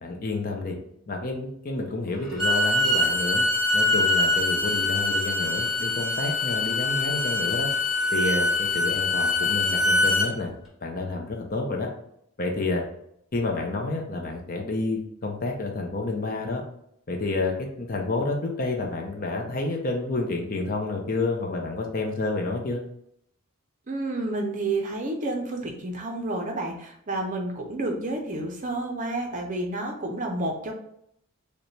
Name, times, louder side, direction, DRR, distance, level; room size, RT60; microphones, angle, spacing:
voice 1, 0.0-0.8 1.1-3.4 3.7-7.7 8.1-10.5 10.8-11.9 12.4-12.8 13.3-16.6 17.1-22.8, left 2 dB, 40° left, 1 dB, 0.6 m, -29 dB
Bowed string instrument, 2.2-10.3, left 2 dB, ahead, 1.1 m, -24 dB
voice 2, 23.9-30.7, right 2 dB, 35° right, 3 dB, 0.5 m, -30 dB
5.1 x 2.2 x 3.2 m, 0.72 s
head